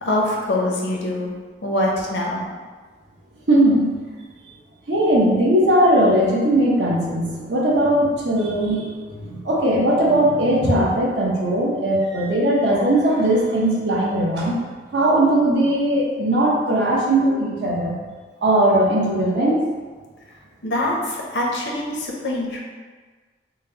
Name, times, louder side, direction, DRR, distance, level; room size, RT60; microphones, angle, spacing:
voice 1, 0.0-1.3 1.6-2.4 20.6-22.6, left 1 dB, 90° left, -2 dB, 0.7 m, -24 dB
voice 2, 3.5-3.9 4.9-14.6 14.9-18.0 18.4-19.6, right 1 dB, 80° right, -3 dB, 0.8 m, -19 dB
4.0 x 2.0 x 3.8 m, 1.4 s
head